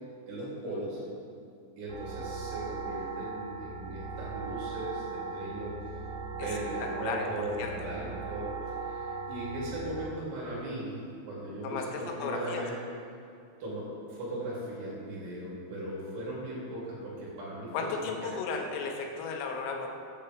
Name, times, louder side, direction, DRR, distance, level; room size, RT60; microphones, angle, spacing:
voice 1, 0.3-1.0 1.8-5.8 6.3-12.8 13.6-17.7 18.0-18.3, right 1 dB, 60° right, -6 dB, 4.3 m, -38 dB
sound 1, 1.9-10.1, right 4 dB, 80° right, 3.6 m, -38 dB
voice 2, 6.8-7.3 7.6-7.7 11.6-12.6 17.7-19.9, left 5 dB, 85° left, 2 dB, 3.6 m, -35 dB
14.0 x 8.8 x 3.3 m, 2.6 s
omnidirectional pair, 5.8 m